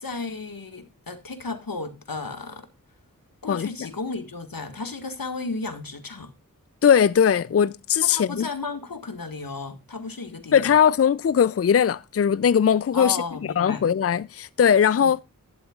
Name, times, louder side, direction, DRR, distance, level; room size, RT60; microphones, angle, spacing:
voice 1, 0.0-2.7 3.4-6.3 8.0-10.7 12.9-13.8 15.0-15.1, left 3 dB, 90° left, 1.7 m, -34 dB
voice 2, 6.8-8.5 10.5-13.2 13.6-15.2, left 8 dB, 45° left, 0.4 m, -19 dB
11.5 x 11.5 x 2.4 m
wide cardioid pair, 40°, 34 cm